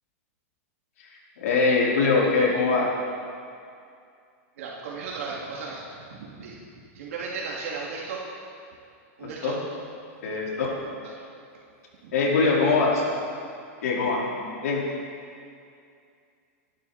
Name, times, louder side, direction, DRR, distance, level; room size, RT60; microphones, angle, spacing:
voice 1, 1.0-2.9 9.2-9.6 10.2-10.7 12.1-13.0 13.8-14.4 14.6-14.8, left 4 dB, 80° left, -4 dB, 4.7 m, -23 dB
voice 2, 4.6-6.6 6.9-8.2 9.2-9.5 10.5-10.6 12.0-12.1, right 4 dB, 70° right, -4 dB, 2.6 m, -35 dB
26.5 x 11.5 x 4.3 m, 2.4 s
supercardioid pair, 155°, 8 cm